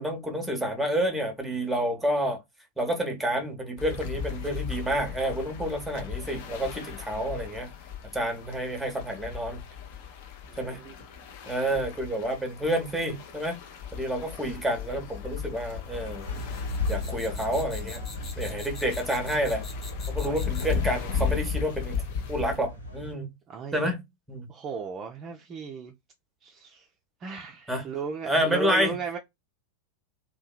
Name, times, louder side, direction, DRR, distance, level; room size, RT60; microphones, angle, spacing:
voice 1, 0.0-2.4 2.8-7.7 8.1-9.6 10.6-10.8 11.5-13.6 13.9-16.3 16.9-18.0 18.4-19.6 20.1-22.0 22.3-23.3 23.7-24.0 24.3-24.5 27.7-27.9 28.3-28.9, equal, 5° right, 0.7 m, -29 dB
sound 1, 3.8-22.6, left 7 dB, 50° left, 0.5 m, -36 dB
voice 2, 10.5-10.9 20.2-20.4 23.5-23.8 24.5-25.9 26.4-26.9 27.2-29.2, right 5 dB, 25° right, 0.3 m, -36 dB
sound 2, 16.2-20.9, left 3 dB, 25° left, 0.9 m, -45 dB
sound 3, 16.3-23.1, left 2 dB, 85° left, 0.8 m, -36 dB
2.6 x 2.1 x 2.2 m
figure-of-eight pair, 90°, 0 cm